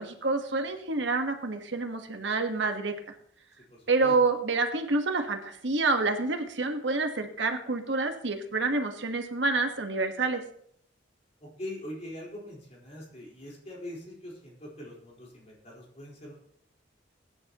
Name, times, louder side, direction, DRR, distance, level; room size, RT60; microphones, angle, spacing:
voice 1, 0.0-3.1 3.9-10.4, right 3 dB, 70° right, 5 dB, 1.4 m, -28 dB
voice 2, 3.7-4.1 11.4-16.3, left 1 dB, 35° left, -3 dB, 4.4 m, -42 dB
21.5 x 10.0 x 3.0 m, 0.69 s
head